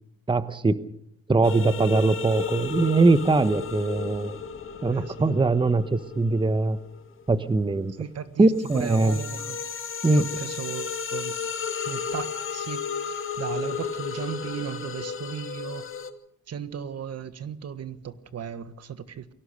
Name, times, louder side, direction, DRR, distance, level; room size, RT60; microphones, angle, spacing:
voice 1, 0.3-0.8 1.3-4.4 4.8-6.8 7.3-7.9 8.4-9.2 10.0-10.2, right 3 dB, 15° right, 1.0 m, -21 dB
sound 1, 1.4-7.8 8.2-16.1, left 6 dB, 45° left, 2.3 m, -34 dB
voice 2, 4.9-5.4 8.0-9.6 10.1-11.3 11.8-15.9 16.5-19.3, right 8 dB, 55° right, 1.5 m, -36 dB
23.5 x 17.0 x 6.7 m
cardioid pair, 90°, 30 cm